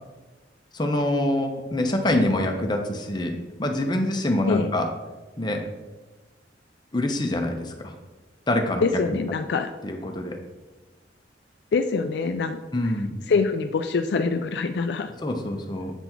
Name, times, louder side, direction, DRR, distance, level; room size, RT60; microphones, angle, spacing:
voice 1, 0.7-3.3 3.6-4.9 5.4-5.6 6.9-7.9 8.5-8.9 9.1-9.2 9.8-10.4 12.7-13.1 15.2-15.9, left 1 dB, 25° left, 3 dB, 0.7 m, -25 dB
voice 2, 8.8-9.7 11.7-12.6 13.3-15.1, left 4 dB, 60° left, 7 dB, 0.3 m, -24 dB
7.9 x 4.1 x 4.4 m, 1.2 s
head